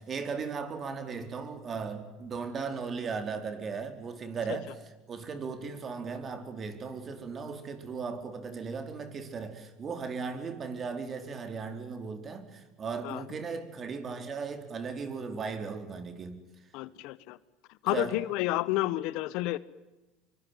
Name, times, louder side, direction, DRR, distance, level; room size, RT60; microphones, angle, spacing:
voice 1, 0.0-4.8 5.1-16.4 17.9-18.2, right 5 dB, 35° right, 4.4 m, -37 dB
voice 2, 16.7-17.4 17.8-19.6, left 17 dB, 70° left, 1.2 m, -30 dB
25.5 x 24.0 x 9.5 m
supercardioid pair, 95°, 0 cm